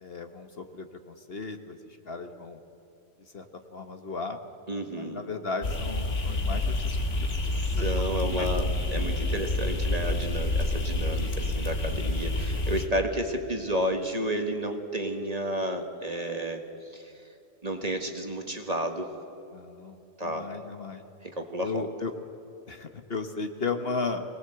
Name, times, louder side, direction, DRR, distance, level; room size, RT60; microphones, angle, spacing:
voice 1, 0.0-2.6 3.3-3.5 3.7-4.4 5.0-6.8 7.2-8.6 19.5-21.0 21.6-22.1 22.7-24.2, left 4 dB, 50° left, 7 dB, 1.3 m, -35 dB
voice 2, 4.7-5.2 7.6-17.1 17.6-19.1 20.2-20.5 21.2-21.8, right 1 dB, 30° right, 4 dB, 1.7 m, -31 dB
sound 1, 5.6-12.9, left 2 dB, 65° left, 2.0 m, -28 dB
24.0 x 19.0 x 7.9 m, 2.7 s
omnidirectional pair, 1.3 m